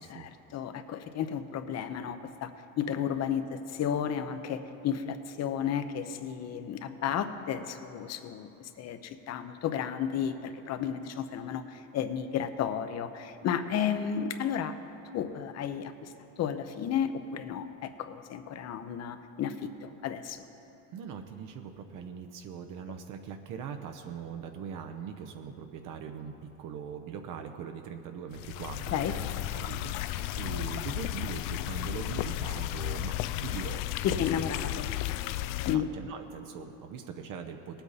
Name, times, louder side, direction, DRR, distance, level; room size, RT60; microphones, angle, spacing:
voice 1, 0.0-14.7 15.1-20.4 28.9-29.1 34.0-35.2 35.6-35.9, left 8 dB, 45° left, 10 dB, 0.8 m, -33 dB
voice 2, 20.9-26.3 26.6-29.2 29.5-34.3 35.7-37.8, right 7 dB, 60° right, 5 dB, 0.8 m, -41 dB
sound 1, 28.3-35.8, left 14 dB, 65° left, 0.5 m, -34 dB
18.5 x 8.1 x 4.1 m, 2.9 s
supercardioid pair, 110°, 36 cm